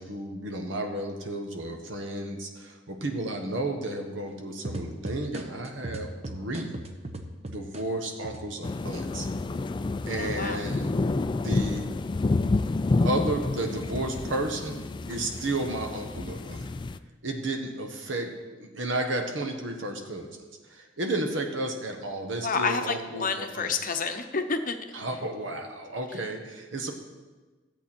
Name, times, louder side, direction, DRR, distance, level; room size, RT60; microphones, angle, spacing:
voice 1, 0.0-6.8 7.4-9.3 10.1-10.9 11.3-11.8 13.0-14.8 15.1-16.7 17.2-18.3 18.6-20.4 20.7-23.7 24.9-26.9, right 2 dB, 80° right, 4 dB, 1.4 m, -32 dB
sound 1, 4.6-9.0 9.4-10.2, right 1 dB, 35° right, 0.9 m, -38 dB
sound 2, 8.6-17.0, left 3 dB, 25° left, 0.3 m, -29 dB
voice 2, 10.2-10.6 22.4-24.8, left 5 dB, 45° left, 7 dB, 0.8 m, -29 dB
13.5 x 8.0 x 4.4 m, 1.3 s
head